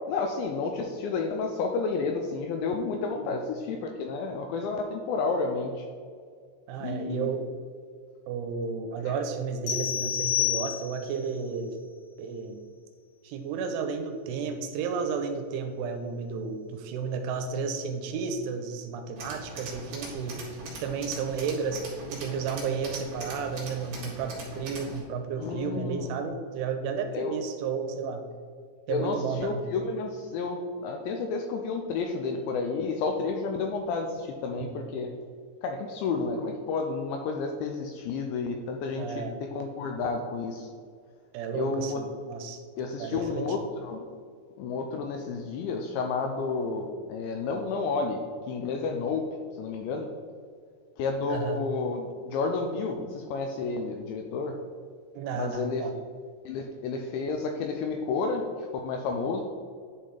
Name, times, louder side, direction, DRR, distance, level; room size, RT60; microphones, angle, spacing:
voice 1, 0.1-5.9 6.8-7.3 9.0-9.1 25.4-26.2 27.1-27.4 28.9-35.1 35.6-40.7 41.5-42.0 42.8-44.0 44.6-50.1 51.0-54.6 55.3-55.9 56.5-59.4, left 4 dB, 85° left, 3 dB, 2.6 m, -31 dB
voice 2, 6.7-7.4 8.3-11.7 12.2-12.6 13.2-20.4 20.8-28.2 28.9-29.6 34.5-34.8 39.0-39.4 41.3-42.6 43.0-43.5 51.3-51.6 55.1-55.9, right 5 dB, 85° right, 6 dB, 3.0 m, -32 dB
sound 1, 9.7-11.2, left 11 dB, 60° left, 2.3 m, -29 dB
Tools, 19.2-25.0, right 3 dB, 55° right, 2.0 m, -41 dB
10.5 x 4.3 x 3.9 m, 2.1 s
omnidirectional pair, 5.7 m